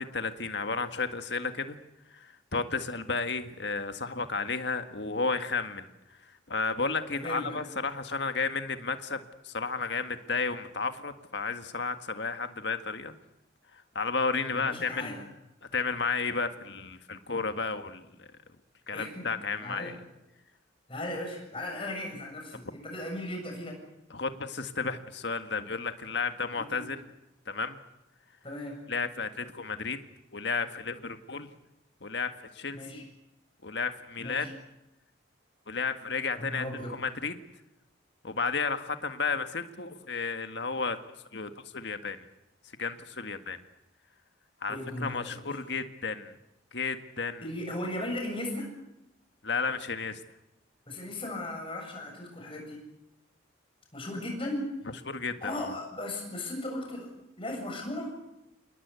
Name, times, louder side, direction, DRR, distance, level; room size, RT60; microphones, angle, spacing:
voice 1, 0.0-1.8 2.1-5.9 6.5-13.1 14.0-15.3 15.7-18.3 18.9-20.0 24.1-27.0 27.5-27.8 28.9-30.0 30.3-31.5 32.0-33.1 33.6-34.5 35.7-37.3 38.2-41.0 41.3-42.3 42.8-43.6 44.6-46.3 46.7-47.4 49.4-50.2 55.1-55.7, left 4 dB, 60° left, 8 dB, 1.8 m, -32 dB
voice 2, 7.1-7.6 14.5-15.3 18.9-19.3 19.6-19.9 20.9-23.8 26.6-26.9 28.4-28.8 32.7-33.1 34.2-34.5 36.4-37.0 44.7-45.6 47.4-48.7 50.9-52.9 53.9-54.7 55.2-57.1 57.4-58.1, left 1 dB, 25° left, 2 dB, 7.4 m, -37 dB
28.0 x 20.0 x 8.4 m, 0.89 s
head